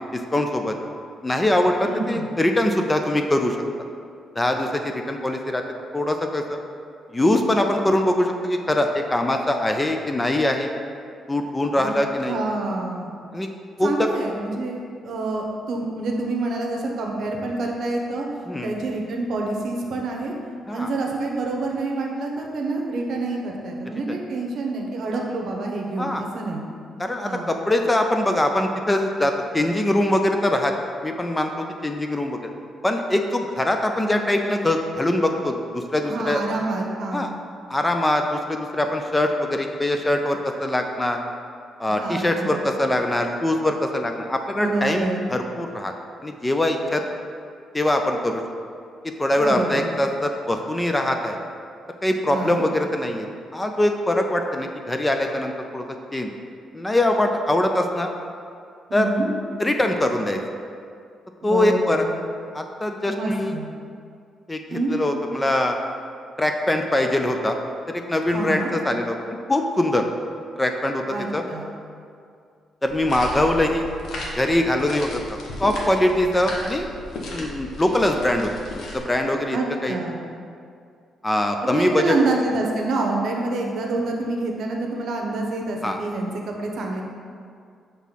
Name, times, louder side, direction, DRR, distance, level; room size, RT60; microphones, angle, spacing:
voice 1, 0.1-0.7 1.2-3.6 4.4-5.6 5.9-6.6 7.1-10.7 11.3-12.4 13.3-13.5 13.8-14.1 18.5-18.7 20.7-20.9 26.0-26.2 27.0-30.7 31.0-32.5 32.8-36.4 37.1-37.3 37.7-41.2 41.8-45.9 46.2-47.0 47.7-48.4 49.2-51.4 52.0-53.3 53.5-55.8 56.1-56.3 56.7-58.1 58.9-59.1 59.6-60.4 61.4-62.0 62.5-63.5 64.5-65.7 66.4-67.6 67.9-69.2 69.5-70.1 70.6-71.0 71.3-71.4 72.8-73.9 74.4-76.9 77.3-78.5 78.9-79.6 79.8-80.0 81.2-82.1 85.8-86.0, left 1 dB, 15° left, 4 dB, 0.4 m, -22 dB
voice 2, 1.8-2.3 11.8-11.9 12.3-13.1 13.8-18.3 18.6-20.3 20.7-26.7 27.2-27.5 36.0-37.3 41.9-42.7 44.5-45.3 49.3-49.9 52.3-52.6 58.9-59.3 61.4-62.1 63.0-63.7 64.7-65.0 68.3-68.7 71.1-71.7 79.5-80.2 81.7-87.0, right 2 dB, 65° right, 1 dB, 0.9 m, -27 dB
sound 1, 72.9-79.0, left 1 dB, 65° left, 1.0 m, -35 dB
5.6 x 3.6 x 5.7 m, 2.3 s
cardioid pair, 135°, 0 cm